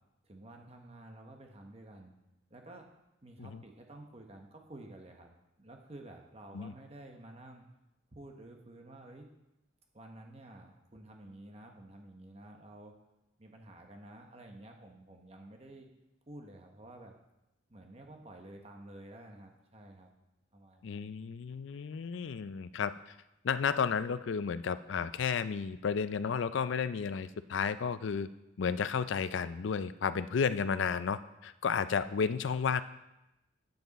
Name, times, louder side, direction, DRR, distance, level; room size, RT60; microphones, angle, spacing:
voice 1, 0.2-2.1 2.5-2.8 3.2-5.3 5.6-7.6 8.1-9.3 9.9-12.9 13.4-15.9 16.3-17.1 17.7-20.1 20.5-21.1, right 1 dB, 30° right, 2 dB, 1.0 m, -51 dB
voice 2, 20.8-23.1 23.4-28.3 28.6-32.8, left 6 dB, 70° left, 14 dB, 0.4 m, -32 dB
9.4 x 7.9 x 4.1 m, 0.91 s
head